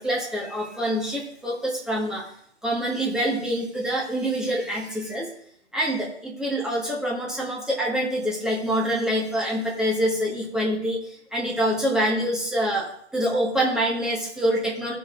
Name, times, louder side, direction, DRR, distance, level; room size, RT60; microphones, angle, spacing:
voice 1, 0.0-2.2 2.6-5.3 5.7-11.0 11.3-12.9 13.1-15.0, equal, ahead, -2 dB, 1.5 m, -25 dB
17.0 x 5.8 x 2.6 m, 0.67 s
hypercardioid pair, 140°, 35 cm